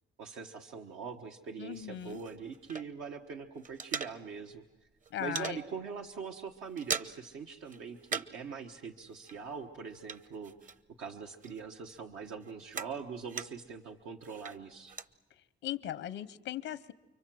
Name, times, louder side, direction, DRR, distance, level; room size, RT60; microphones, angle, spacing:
voice 1, 0.2-4.9 5.2-14.9, right 6 dB, 85° right, 2 dB, 1.3 m, -43 dB
voice 2, 1.6-2.2 5.1-5.6 15.6-16.9, left 11 dB, 85° left, 15 dB, 0.8 m, -38 dB
sound 1, 1.7-3.2 3.5-4.6 4.9-5.6 6.0-6.2 6.5-7.4 7.6-8.5 8.7-11.1 11.4-13.8 14.2-15.1, right 5 dB, 40° right, 1.0 m, -41 dB
30.0 x 23.5 x 7.7 m, 1.2 s
cardioid pair, 90°, 20 cm